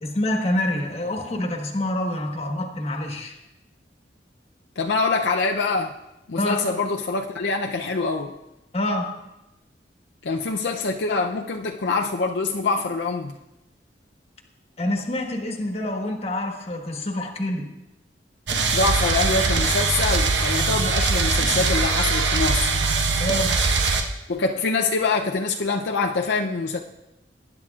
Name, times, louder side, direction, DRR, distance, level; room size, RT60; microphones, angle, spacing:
voice 1, 0.0-3.3 6.4-6.6 8.7-9.1 14.8-17.7 23.2-23.6, left 1 dB, 35° left, 2 dB, 1.4 m, -26 dB
voice 2, 4.8-6.0 6.3-8.3 10.2-13.3 18.7-22.8 24.3-26.8, left 3 dB, 70° left, 2 dB, 0.5 m, -25 dB
sound 1, 18.5-24.0, right 4 dB, 90° right, 1.1 m, -21 dB
20.0 x 10.0 x 2.4 m, 0.95 s
head